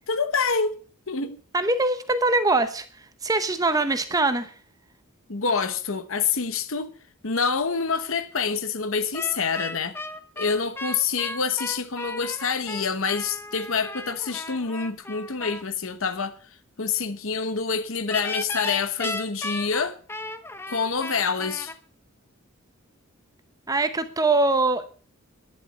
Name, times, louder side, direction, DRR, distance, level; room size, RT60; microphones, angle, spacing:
voice 1, 0.1-0.7 1.1-1.4 5.3-6.9 7.2-9.9 10.4-16.4 16.8-20.0 20.7-21.7, left 5 dB, 65° left, 1.0 m, -26 dB
voice 2, 1.5-4.5 23.7-24.9, right 2 dB, 15° right, 0.9 m, -23 dB
sound 1, 9.1-15.6 18.1-21.7, left 2 dB, 10° left, 0.9 m, -35 dB
11.0 x 11.0 x 6.7 m
head